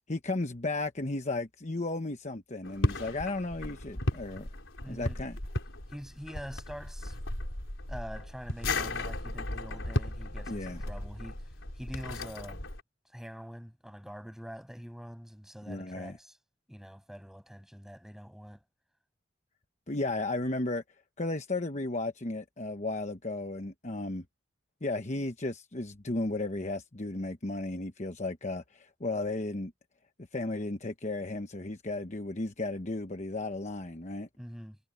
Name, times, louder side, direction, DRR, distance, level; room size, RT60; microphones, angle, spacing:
voice 1, 0.1-4.5 4.9-5.4 10.5-10.8 15.7-16.2 19.9-20.8 21.2-24.2 24.8-29.7 30.3-34.3, left 2 dB, 35° left, 1.1 m, -34 dB
sound 1, 2.6-12.8, left 1 dB, 75° left, 4.0 m, -35 dB
voice 2, 4.8-5.2 5.9-7.2 7.9-11.5 11.7-12.7 13.1-16.4 16.7-18.6 34.4-34.8, equal, ahead, 7.0 m, -45 dB
head